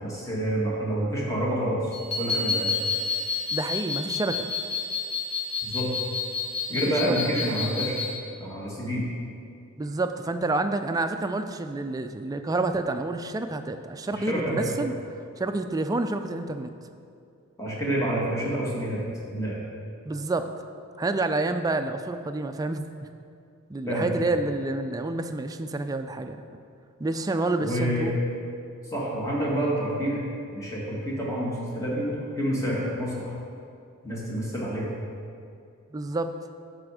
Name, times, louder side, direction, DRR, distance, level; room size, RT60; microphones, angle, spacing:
voice 1, 0.0-2.7 5.6-5.9 6.7-8.0 8.4-9.0 14.1-14.7 17.6-19.0 19.3-19.6 23.9-24.2 27.6-28.1 28.9-30.2 30.5-33.4 34.0-34.9, equal, 15° left, -5 dB, 1.8 m, -28 dB
sound 1, 1.9-8.1, left 4 dB, 75° left, 1.7 m, -30 dB
voice 2, 3.5-4.5 7.0-7.2 9.8-14.9 15.4-16.7 20.1-20.5 21.0-22.8 23.7-26.4 27.0-28.1 35.9-36.3, right 2 dB, 15° right, 8 dB, 0.3 m, -28 dB
11.0 x 4.3 x 4.9 m, 2.4 s
head